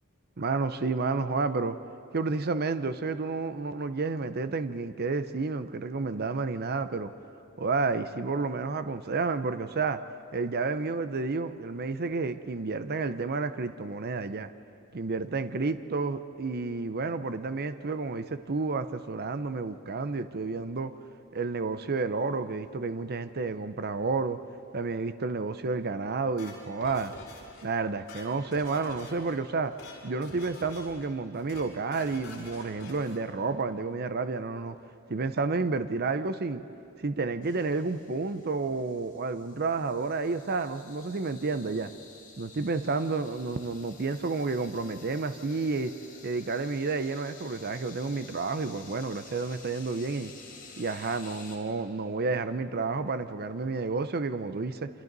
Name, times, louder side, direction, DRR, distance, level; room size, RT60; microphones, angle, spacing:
voice 1, 0.4-1.8 2.1-7.1 7.6-10.0 10.3-14.5 14.9-20.9 21.3-24.4 24.7-27.1 27.6-29.7 30.0-34.8 35.1-36.6 37.0-41.9 42.4-45.9 46.2-50.3 50.8-54.9, right 4 dB, 50° right, 11 dB, 0.7 m, -30 dB
sound 1, 26.4-27.6 27.9-29.3 29.6-30.0 30.2-31.1 31.3-31.7 31.9-33.2, left 3 dB, 60° left, 7.4 m, -47 dB
sound 2, 37.4-51.6, left 4 dB, 40° left, 4.1 m, -51 dB
28.5 x 27.0 x 4.1 m, 2.7 s
head